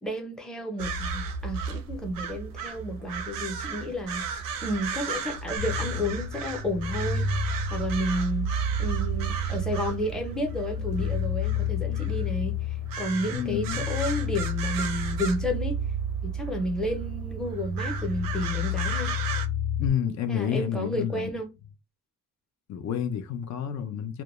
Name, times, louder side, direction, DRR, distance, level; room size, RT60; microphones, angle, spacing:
voice 1, 0.0-4.3 4.6-7.4 7.7-8.5 8.8-15.8 16.2-19.1 20.3-21.5, left 1 dB, ahead, 0.5 m, -31 dB
sound 1, 0.8-19.5, right 6 dB, 90° right, 0.5 m, -36 dB
sound 2, 5.6-19.9, left 2 dB, 90° left, 0.8 m, -30 dB
voice 2, 13.3-13.8 19.8-21.3 22.7-24.2, left 8 dB, 60° left, 0.4 m, -29 dB
2.2 x 2.1 x 2.9 m
wide cardioid pair, 145°, 33 cm